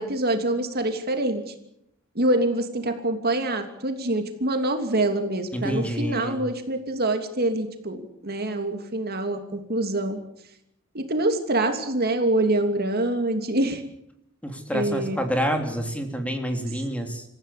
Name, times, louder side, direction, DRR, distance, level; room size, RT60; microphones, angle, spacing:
voice 1, 0.0-1.5 2.1-10.2 10.9-13.8 14.7-15.2, right 1 dB, 50° right, 6 dB, 3.0 m, -25 dB
voice 2, 5.5-6.4 14.4-17.2, equal, 5° left, 5 dB, 3.2 m, -28 dB
28.0 x 15.5 x 8.5 m, 0.79 s
head